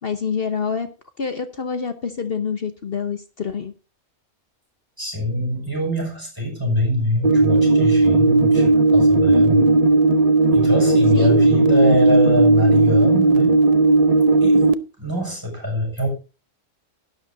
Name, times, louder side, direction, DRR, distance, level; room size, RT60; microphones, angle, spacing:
voice 1, 0.0-0.9 1.2-3.7 9.3-9.9 11.1-11.5, left 6 dB, 50° left, 9 dB, 1.1 m, -27 dB
voice 2, 5.0-9.6 10.5-13.6 14.4-14.6 15.0-16.1, left 1 dB, 15° right, 0 dB, 6.6 m, -24 dB
sound 1, 7.2-14.7, right 3 dB, 40° right, 0.6 m, -15 dB
12.5 x 11.5 x 3.9 m, 0.31 s
omnidirectional pair, 1.3 m